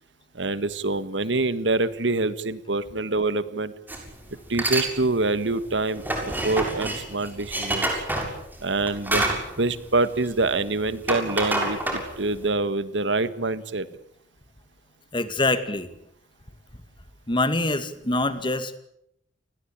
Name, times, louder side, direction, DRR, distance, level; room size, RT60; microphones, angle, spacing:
voice 1, 0.3-3.7 4.5-7.9 8.6-13.9, right 2 dB, 80° right, 14 dB, 1.8 m, -26 dB
sound 1, 3.9-4.1 4.5-4.9 5.3-10.6 10.9-12.4, right 1 dB, 10° right, 6.9 m, -27 dB
voice 2, 15.1-15.9 17.3-18.8, left 2 dB, 30° left, 11 dB, 2.3 m, -24 dB
30.0 x 20.5 x 9.0 m, 0.75 s
head